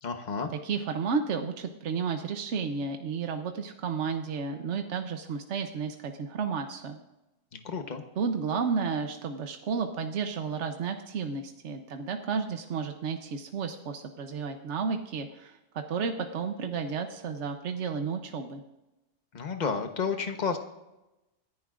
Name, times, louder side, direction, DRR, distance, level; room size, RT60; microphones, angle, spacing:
voice 1, 0.0-0.5 7.5-8.0 19.3-20.6, left 5 dB, 40° left, 6 dB, 1.1 m, -31 dB
voice 2, 0.6-7.0 8.2-18.6, right 5 dB, 80° right, 6 dB, 1.1 m, -32 dB
27.0 x 10.5 x 2.5 m, 0.98 s
omnidirectional pair, 1.2 m